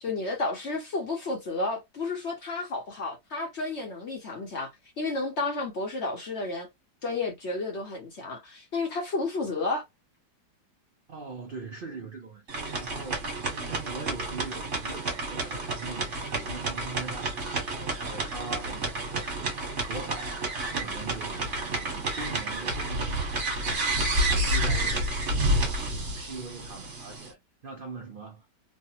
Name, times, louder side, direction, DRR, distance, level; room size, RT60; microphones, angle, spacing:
voice 1, 0.0-4.7 5.0-6.7 7.0-9.8, left 3 dB, 55° left, 0.8 m, -31 dB
voice 2, 11.1-12.5 12.8-19.6 19.9-23.9 24.3-28.5, right 4 dB, 80° right, 0.4 m, -42 dB
sound 1, 12.5-27.3, right 1 dB, 45° right, 1.5 m, -30 dB
3.2 x 2.1 x 2.7 m
omnidirectional pair, 1.9 m